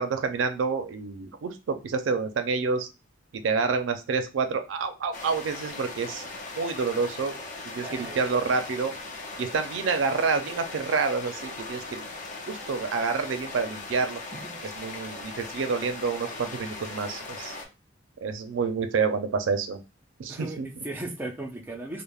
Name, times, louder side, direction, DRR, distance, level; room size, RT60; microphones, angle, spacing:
voice 1, 0.0-2.9 3.3-6.2 6.6-7.4 7.7-8.9 9.4-12.1 12.5-14.2 14.8-17.5 18.2-19.8 20.2-20.7, right 4 dB, 75° right, 8 dB, 0.4 m, -28 dB
sound 1, 5.1-17.7, left 3 dB, 40° left, 0.5 m, -39 dB
voice 2, 7.8-8.2 14.4-14.6 20.3-22.0, right 2 dB, 10° right, 1 dB, 0.4 m, -36 dB
3.3 x 2.0 x 2.3 m, 0.28 s
head